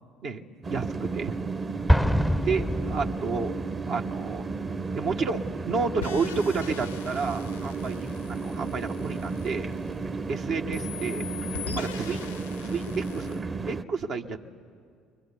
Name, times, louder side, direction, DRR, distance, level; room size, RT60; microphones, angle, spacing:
sound 1, 0.6-13.8, right 4 dB, 35° right, 1.1 m, -33 dB
voice 1, 0.7-1.4 2.4-3.5 3.9-4.5 4.9-8.0 8.3-9.7 10.3-11.3 11.6-12.2 12.6-14.4, right 4 dB, 60° right, 3 dB, 1.3 m, -30 dB
Explosion, 1.9-3.7, equal, ahead, 0.6 m, -25 dB
sound 2, 6.0-10.3 10.7-13.4, left 10 dB, 85° left, 0.7 m, -42 dB
23.0 x 21.5 x 9.8 m, 2.1 s
hypercardioid pair, 60°, 0 cm